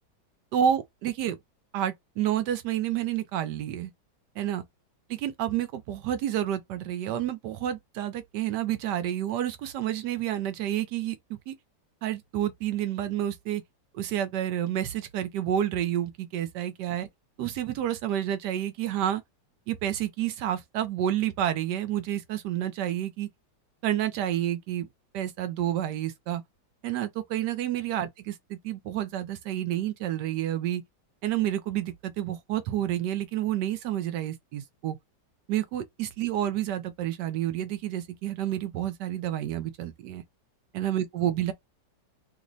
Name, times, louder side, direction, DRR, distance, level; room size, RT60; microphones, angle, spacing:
voice 1, 0.5-1.4 1.7-3.9 4.4-4.6 5.1-11.5 12.0-13.6 13.9-17.1 17.4-19.2 19.7-23.3 23.8-24.9 25.1-26.4 26.8-30.8 31.2-35.0 35.5-40.2 40.7-41.5, right 11 dB, 75° right, 1.1 m, -29 dB
3.2 x 2.1 x 3.8 m
omnidirectional pair, 2.0 m